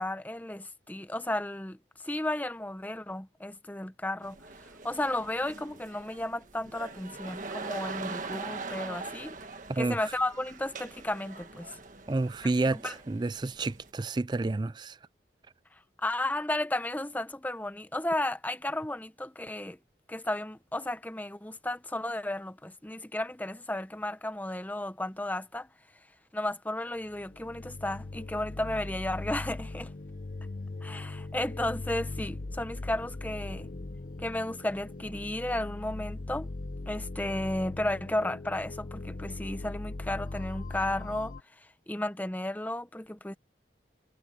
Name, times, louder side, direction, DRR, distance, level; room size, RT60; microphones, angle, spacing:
voice 1, 0.0-1.8 2.0-4.4 4.8-9.4 9.8-11.8 12.8-12.9 16.0-19.8 20.1-25.7 26.3-29.9 30.8-33.7 34.2-36.5 36.9-41.3 41.9-43.4, left 1 dB, 10° left, 0.7 m, -33 dB
sound 1, 4.2-13.9, right 3 dB, 45° right, 1.7 m, -42 dB
voice 2, 12.1-15.0, right 2 dB, 25° right, 0.4 m, -30 dB
sound 2, 27.1-41.4, left 2 dB, 50° left, 0.7 m, -40 dB
head